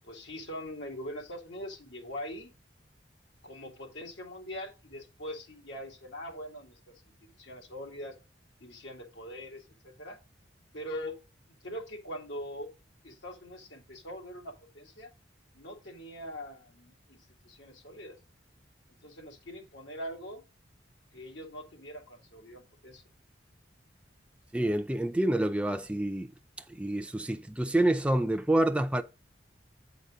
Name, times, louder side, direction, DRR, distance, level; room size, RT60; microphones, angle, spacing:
voice 1, 0.0-2.5 3.4-6.9 7.4-8.2 8.6-10.2 10.7-11.2 11.6-12.7 13.0-15.1 15.5-18.2 19.0-20.4 21.1-23.0, equal, 90° left, 2.0 m, -42 dB
voice 2, 24.5-26.3 26.8-29.0, right 1 dB, 5° right, 0.4 m, -27 dB
8.2 x 4.0 x 4.8 m
head